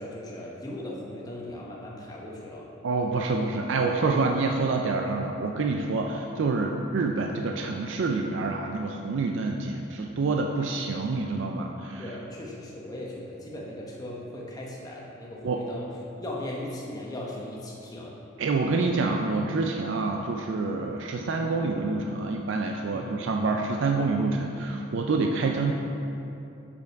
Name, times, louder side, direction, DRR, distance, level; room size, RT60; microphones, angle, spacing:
voice 1, 0.0-2.7 12.0-15.9 16.2-18.1 22.9-23.2, left 1 dB, 15° left, -3 dB, 0.9 m, -38 dB
voice 2, 2.8-12.0 15.4-15.6 18.4-25.7, right 3 dB, 60° right, 2 dB, 0.4 m, -27 dB
7.0 x 5.4 x 4.5 m, 2.8 s
head